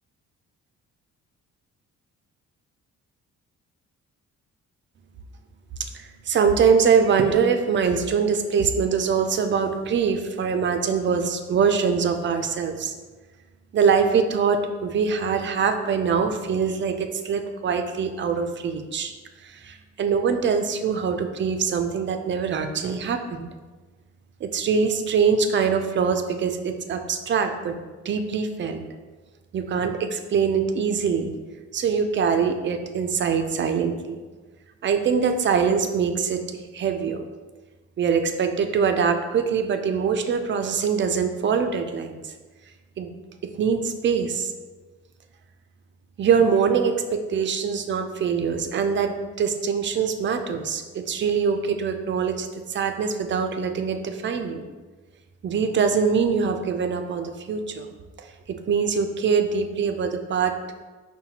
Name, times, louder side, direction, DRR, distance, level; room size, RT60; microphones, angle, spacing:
voice 1, 5.9-12.9 13.7-19.1 19.4-23.5 24.4-27.8 28.0-28.8 29.5-31.3 31.7-34.2 34.8-37.2 38.0-42.3 43.0-43.1 43.6-44.5 46.2-54.6 55.4-57.9 58.2-60.6, right 6 dB, 40° right, 7 dB, 0.4 m, -23 dB
5.5 x 2.2 x 2.8 m, 1.3 s
cardioid pair, 90°, 30 cm